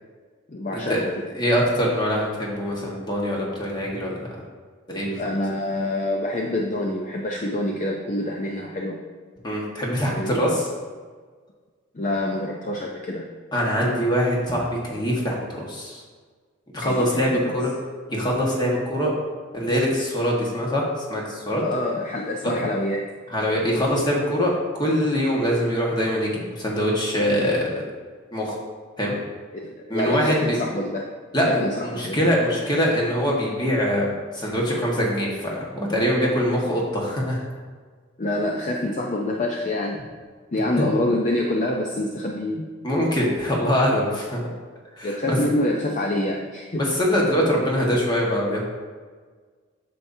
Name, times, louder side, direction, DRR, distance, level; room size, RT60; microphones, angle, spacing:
voice 1, 0.5-1.2 5.2-9.0 10.1-10.4 11.9-13.3 16.8-17.6 21.6-23.0 29.5-31.1 31.5-32.2 38.2-40.1 40.5-42.7 45.0-46.8, left 1 dB, 40° left, 0 dB, 0.5 m, -26 dB
voice 2, 1.3-4.2 4.9-5.2 9.4-10.7 13.5-16.0 16.7-17.7 18.1-19.1 19.5-21.6 22.4-22.5 23.3-27.8 28.3-28.6 29.0-29.1 29.9-30.6 31.3-37.4 40.8-40.9 42.8-44.4 45.0-45.4 46.7-48.6, equal, 20° left, -3 dB, 1.4 m, -23 dB
8.9 x 6.9 x 2.7 m, 1.5 s
head